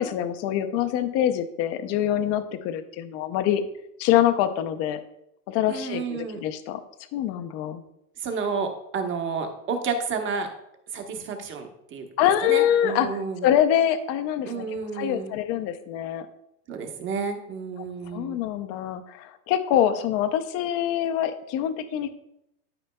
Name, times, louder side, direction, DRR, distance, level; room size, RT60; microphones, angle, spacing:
voice 1, 0.0-3.6 4.0-5.0 5.5-6.8 7.1-7.8 12.2-13.1 13.4-14.7 14.9-16.3 18.1-22.1, left 11 dB, 35° left, 10 dB, 0.6 m, -24 dB
voice 2, 5.7-6.4 8.2-10.5 10.9-13.5 14.4-15.3 16.7-18.4, right 5 dB, 25° right, 4 dB, 1.0 m, -31 dB
12.5 x 5.1 x 2.2 m, 0.81 s
hypercardioid pair, 130°, 47 cm